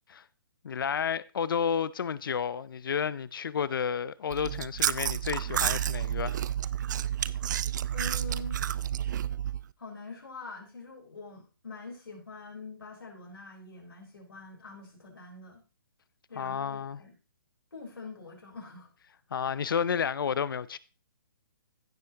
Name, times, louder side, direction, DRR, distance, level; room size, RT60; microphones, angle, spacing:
voice 1, 0.6-6.4 16.3-17.0 19.3-20.8, left 7 dB, 70° left, 0.6 m, -31 dB
Chewing mastication, 4.3-9.6, right 10 dB, 55° right, 0.4 m, -30 dB
voice 2, 7.9-8.6 9.8-15.6 16.3-17.2 17.7-18.9, left 3 dB, 90° left, 4.1 m, -44 dB
16.0 x 6.3 x 2.9 m
hypercardioid pair, 145°, 12 cm